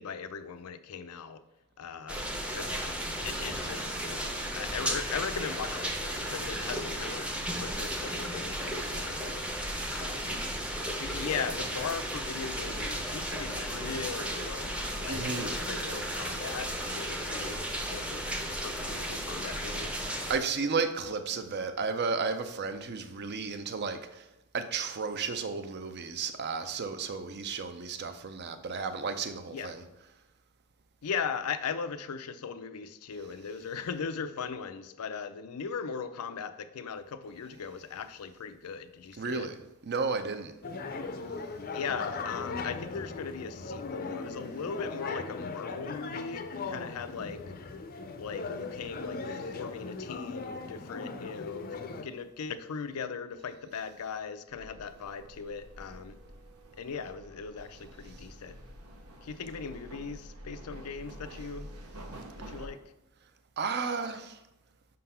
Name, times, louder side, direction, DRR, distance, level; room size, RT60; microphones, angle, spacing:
voice 1, 0.0-1.4 1.8-2.2 2.5-2.9 3.2-7.3 7.6-10.4 11.0-18.2 18.5-20.0 29.5-29.7 31.0-39.5 41.7-47.4 48.2-51.8 52.0-56.2 56.8-58.6 59.2-61.7 62.5-62.8, left 6 dB, 90° left, 11 dB, 0.5 m, -39 dB
sound 1, 2.1-20.4, equal, 5° right, 0.6 m, -34 dB
voice 2, 15.1-15.6 20.3-24.3 24.5-29.8 39.2-39.6 39.9-40.5 63.6-64.4, right 4 dB, 50° right, 9 dB, 0.6 m, -33 dB
sound 2, 40.6-52.0, left 4 dB, 40° left, 0.5 m, -38 dB
sound 3, 54.5-62.7, right 1 dB, 80° right, 1.0 m, -48 dB
5.5 x 3.9 x 5.6 m, 0.94 s
head